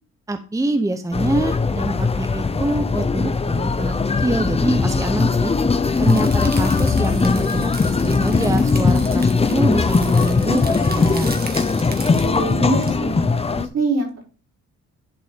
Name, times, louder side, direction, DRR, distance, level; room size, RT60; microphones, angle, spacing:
voice 1, 0.3-5.5 6.0-7.7 8.0-11.4, right 2 dB, 10° right, 8 dB, 0.8 m, -25 dB
sound 1, 1.1-13.7, left 4 dB, 20° left, 0.7 m, -19 dB
sound 2, 5.9-12.9, right 3 dB, 30° right, 1.8 m, -37 dB
voice 2, 12.2-13.3 13.5-14.2, right 3 dB, 60° right, 0 dB, 4.1 m, -24 dB
11.0 x 4.1 x 5.1 m, 0.36 s
cardioid pair, 90°, 30 cm